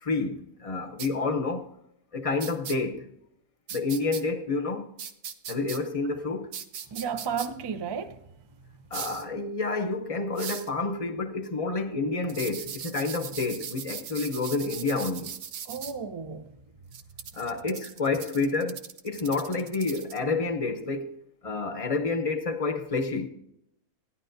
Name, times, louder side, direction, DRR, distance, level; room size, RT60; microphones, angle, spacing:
voice 1, 0.0-1.7 2.1-3.1 3.7-4.9 5.5-6.5 8.9-15.3 17.3-21.2 21.4-23.3, left 3 dB, 30° left, 0.7 m, -29 dB
sound 1, 1.0-1.1 2.4-2.8 3.7-4.2 5.0-5.8 6.5-7.5 8.9-9.2 10.4-10.7 12.3-15.9 16.9-20.2, right 8 dB, 75° right, 1.2 m, -39 dB
voice 2, 6.9-8.3 15.7-16.6 17.5-17.8, right 6 dB, 40° right, 0.3 m, -33 dB
17.0 x 11.0 x 2.6 m
omnidirectional pair, 1.5 m